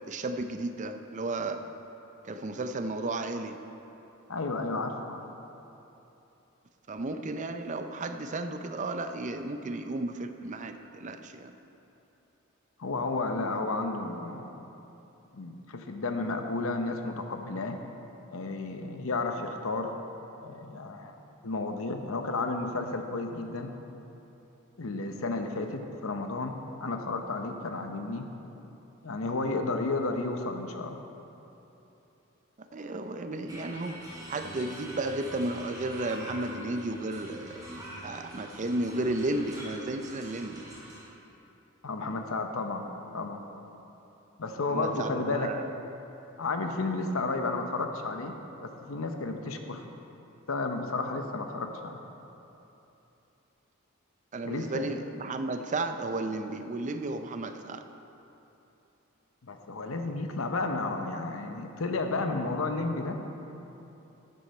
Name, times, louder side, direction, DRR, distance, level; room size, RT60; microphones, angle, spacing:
voice 1, 0.1-1.6 2.2-3.6 6.9-11.5 32.7-34.0 34.3-37.6 38.0-40.6 44.7-45.7 54.3-57.8, right 2 dB, 35° right, 7 dB, 0.5 m, -33 dB
voice 2, 4.3-5.2 12.8-14.6 15.3-17.8 18.3-19.9 20.4-21.2 21.4-23.7 24.8-28.3 29.0-31.0 41.8-42.9 43.1-43.4 44.4-45.5 46.4-48.4 48.6-49.9 50.5-52.0 54.4-54.9 59.4-63.2, left 3 dB, 75° left, 5 dB, 0.8 m, -32 dB
sound 1, 33.5-41.0, right 1 dB, 20° right, 2.3 m, -44 dB
11.0 x 9.2 x 4.3 m, 3.0 s
head